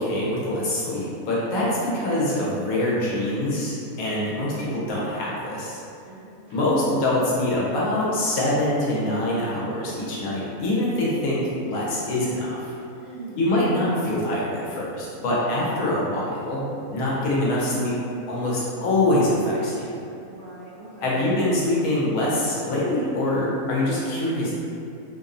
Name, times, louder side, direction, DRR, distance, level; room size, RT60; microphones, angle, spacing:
voice 1, 0.0-5.8 6.5-12.7 13.4-17.9 18.3-19.9 21.0-24.5, left 1 dB, 90° left, -6 dB, 1.1 m, -24 dB
voice 2, 6.0-6.8 13.0-13.5 20.2-21.3, right 3 dB, 65° right, -12 dB, 0.5 m, -42 dB
2.9 x 2.0 x 2.5 m, 2.6 s
omnidirectional pair, 1.5 m